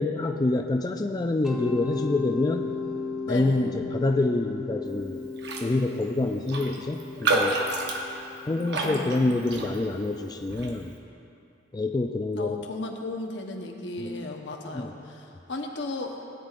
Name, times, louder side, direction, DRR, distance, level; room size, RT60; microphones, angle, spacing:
voice 1, 0.0-2.7 3.3-5.2 5.6-7.6 8.5-10.9 11.7-12.6 14.0-14.3 14.7-14.9, left 2 dB, 20° left, 4 dB, 0.3 m, -27 dB
Mallet percussion, 1.4-10.2, left 4 dB, ahead, 1.0 m, -36 dB
voice 2, 3.3-3.7 8.8-9.3 12.3-16.2, left 2 dB, 75° left, 2 dB, 1.0 m, -35 dB
Raindrop, 5.4-5.7 6.0-6.1 6.5-10.1 10.5-10.8, right 2 dB, 65° right, 1.0 m, -29 dB
16.5 x 9.4 x 2.5 m, 2.6 s
head